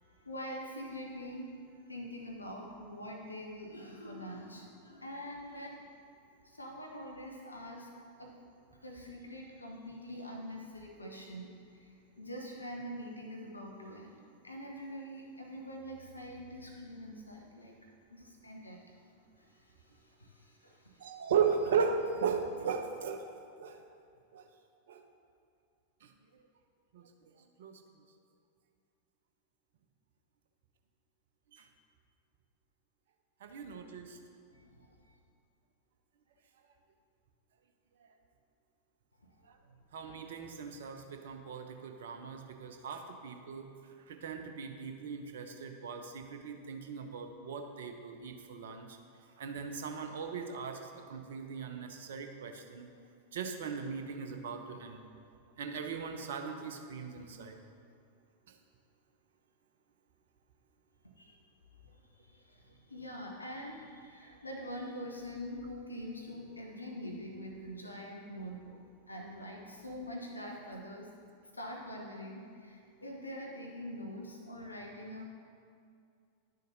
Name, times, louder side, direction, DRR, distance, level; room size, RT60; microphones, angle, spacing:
voice 1, 0.0-5.8 6.4-8.3 8.8-17.7 18.1-19.0 19.4-21.1 33.5-33.6 34.5-35.1 39.6-39.8 61.2-61.4 61.9-68.8 69.1-71.1 71.5-75.3, equal, 85° left, 0 dB, 0.8 m, -45 dB
voice 2, 21.0-23.3 23.6-23.8 24.3-24.4 24.9-25.0 26.0-26.1 26.9-27.1 27.6-27.8 31.5-31.6 33.4-34.2 39.9-43.7 44.1-49.0 49.4-52.9 53.3-55.1 55.6-57.6, right 6 dB, 60° right, 5 dB, 0.7 m, -37 dB
11.0 x 6.5 x 2.7 m, 2.3 s
figure-of-eight pair, 90°, 0 cm